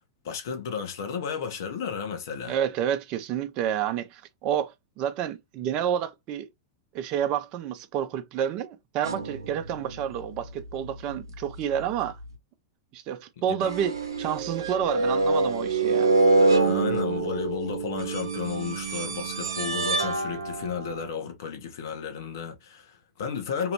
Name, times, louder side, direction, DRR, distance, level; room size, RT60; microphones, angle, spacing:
voice 1, 0.2-2.6 13.5-13.7 16.5-23.7, left 6 dB, 60° left, 1.0 m, -33 dB
voice 2, 2.4-6.5 6.9-12.2 12.9-16.1, right 9 dB, 40° right, 0.6 m, -29 dB
sound 1, 9.0-10.4 10.8-11.1 12.2-12.3 13.6-21.1, right 3 dB, 80° right, 0.7 m, -26 dB
3.0 x 2.5 x 3.0 m
figure-of-eight pair, 95°, 2 cm